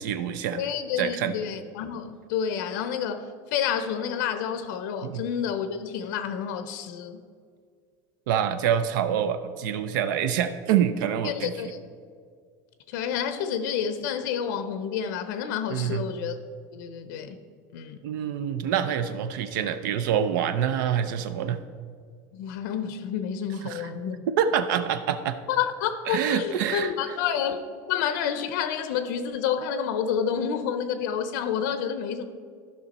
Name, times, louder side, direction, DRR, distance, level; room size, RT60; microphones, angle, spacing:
voice 1, 0.0-0.6 1.0-1.3 5.0-5.2 8.3-11.5 15.7-16.0 18.0-21.6 23.6-23.9 24.4-25.4 26.1-26.9, right 9 dB, 85° right, 10 dB, 0.5 m, -26 dB
voice 2, 0.6-7.2 11.2-11.8 12.9-16.4 16.7-17.4 17.7-18.0 22.3-24.2 25.5-32.2, left 8 dB, 75° left, 10 dB, 0.6 m, -29 dB
11.5 x 5.6 x 4.1 m, 2.1 s
cardioid pair, 170°, 10 cm